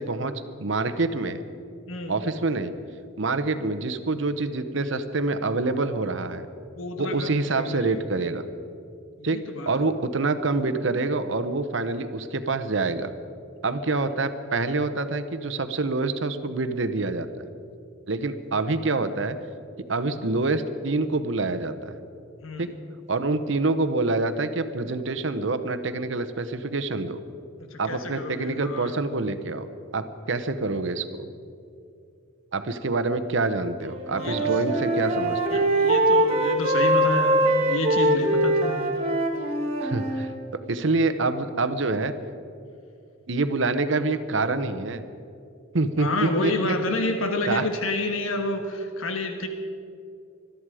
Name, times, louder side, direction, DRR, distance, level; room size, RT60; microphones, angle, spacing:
voice 1, 0.0-1.4 2.1-2.7 3.2-6.5 7.0-8.4 9.2-9.4 9.7-13.1 13.6-17.4 18.1-19.4 19.9-22.0 22.6-22.7 23.1-27.2 27.8-29.7 29.9-31.3 32.5-35.6 39.8-40.3 40.7-42.1 43.3-45.0 45.7-46.7 47.5-47.6, right 3 dB, 65° right, 11 dB, 0.9 m, -26 dB
voice 2, 6.7-8.0 9.2-9.7 22.4-22.7 27.7-29.0 34.1-34.5 35.5-38.9 46.0-49.5, left 2 dB, 80° left, 5 dB, 1.3 m, -29 dB
Wind instrument woodwind instrument, 33.9-40.3, right 1 dB, 30° right, 2.4 m, -22 dB
21.5 x 13.0 x 4.9 m, 2.5 s
head